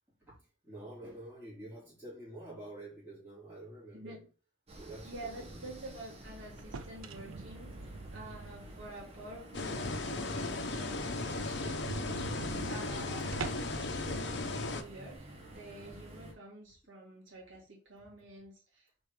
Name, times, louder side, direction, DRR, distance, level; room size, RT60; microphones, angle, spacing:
voice 1, 0.6-4.2 4.8-5.7 10.6-10.7 11.5-11.6, right 1 dB, 10° right, 3.3 m, -48 dB
voice 2, 3.9-4.2 5.0-11.8 12.7-19.0, right 1 dB, 70° right, 2.5 m, -49 dB
sound 1, 4.7-16.3, right 1 dB, 30° right, 1.6 m, -50 dB
sound 2, 6.6-9.1 9.6-9.7 10.1-10.2 10.4-10.5 10.8-10.9 11.2-13.8, right 4 dB, 85° right, 0.6 m, -44 dB
sound 3, 9.5-14.8, left 3 dB, 55° left, 0.8 m, -36 dB
4.9 x 4.4 x 4.9 m
head